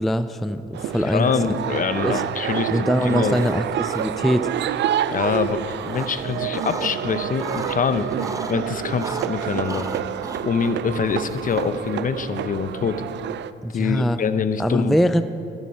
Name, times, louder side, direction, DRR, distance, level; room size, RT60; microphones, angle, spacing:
voice 1, 0.0-1.6 2.0-2.2 2.7-4.5 13.6-14.2 14.6-15.2, equal, ahead, 11 dB, 0.3 m, -22 dB
sound 1, 0.7-13.5, right 10 dB, 65° right, 0.5 m, -28 dB
voice 2, 1.1-3.5 5.1-8.1 8.5-9.9 10.4-13.0 13.7-14.9, left 6 dB, 45° left, 12 dB, 0.7 m, -25 dB
sound 2, 3.2-3.6 3.8-4.5 5.4-6.9 7.2-8.5 9.0-11.9, right 3 dB, 15° right, 0.7 m, -36 dB
11.0 x 10.5 x 5.6 m, 2.6 s
cardioid pair, 90°, 20 cm